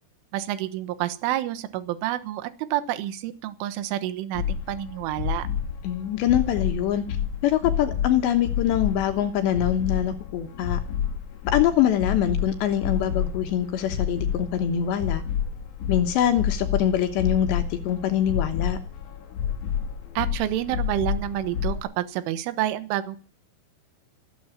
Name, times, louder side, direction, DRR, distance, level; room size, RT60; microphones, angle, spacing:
voice 1, 0.3-5.5 20.2-23.2, right 13 dB, 80° right, 11 dB, 3.7 m, -28 dB
sound 1, 4.3-21.8, left 8 dB, 50° left, 2.7 m, -30 dB
voice 2, 5.8-7.0 7.4-10.8 11.5-15.2 15.9-18.8, left 10 dB, 70° left, 7 dB, 3.1 m, -24 dB
16.0 x 12.5 x 7.3 m, 0.39 s
omnidirectional pair, 5.7 m